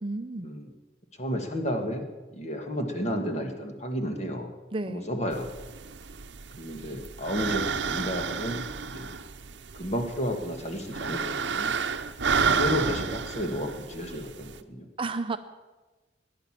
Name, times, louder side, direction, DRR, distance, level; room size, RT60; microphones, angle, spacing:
voice 1, 0.0-0.6 4.7-5.1 15.0-15.4, right 3 dB, 30° right, 9 dB, 0.6 m, -32 dB
voice 2, 1.2-4.5 4.9-5.5 6.6-9.2 9.7-11.7 12.4-14.9, equal, 40° left, 4 dB, 1.8 m, -32 dB
sound 1, 5.3-14.6, right 5 dB, 75° right, 0.8 m, -31 dB
17.0 x 10.5 x 7.5 m, 1.2 s
head